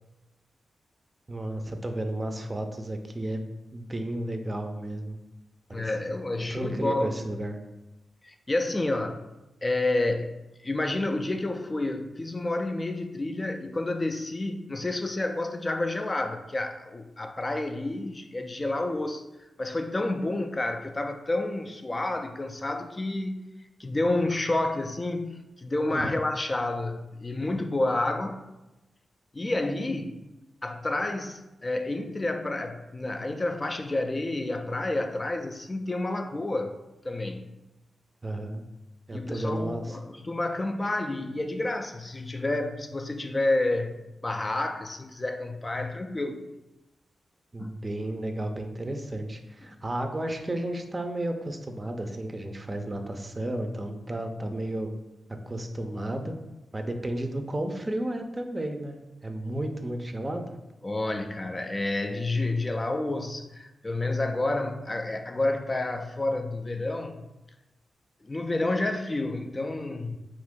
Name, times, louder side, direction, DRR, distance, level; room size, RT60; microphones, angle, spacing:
voice 1, 1.3-3.4 3.7-5.2 5.7-5.8 6.4-7.6 25.9-26.2 38.2-38.6 39.1-40.0 47.5-54.9 55.5-56.3 56.7-59.0 59.2-60.5, right 1 dB, 30° right, 5 dB, 0.5 m, -33 dB
voice 2, 5.7-7.2 8.2-9.2 9.6-10.4 10.6-19.2 19.6-23.4 23.8-28.4 29.3-30.2 30.6-36.7 37.0-37.4 39.1-44.0 44.2-46.4 47.6-47.7 60.8-67.2 68.2-70.2, left 2 dB, 30° left, 6 dB, 0.3 m, -29 dB
2.9 x 2.5 x 3.6 m, 1.0 s
cardioid pair, 50°, 0 cm